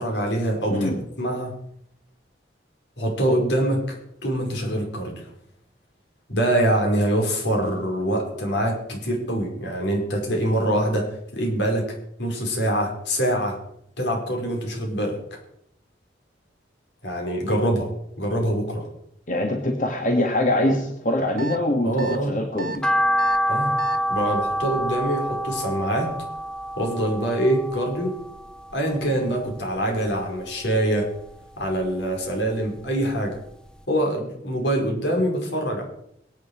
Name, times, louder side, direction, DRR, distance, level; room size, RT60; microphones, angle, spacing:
voice 1, 0.0-1.5 3.0-4.0 4.2-5.1 6.3-11.1 11.3-11.8 12.2-13.5 14.0-15.2 17.0-17.9 18.2-18.9 21.8-22.3 23.5-23.7 24.1-26.1 26.8-28.1 28.7-31.1 31.6-33.4 33.9-35.8, right 1 dB, 75° left, 1 dB, 5.2 m, -24 dB
voice 2, 19.3-22.8, left 1 dB, 45° left, 2 dB, 1.7 m, -23 dB
sound 1, 21.4-21.6 22.0-22.2 22.6-22.8 23.2-23.4 23.8-24.0, right 2 dB, 50° right, 0.9 m, -32 dB
sound 2, 22.8-29.1 29.5-30.6 31.0-32.4 32.8-32.9 33.4-33.5 33.7-33.8, equal, 5° left, 0.5 m, -27 dB
22.5 x 9.1 x 4.9 m, 0.74 s
head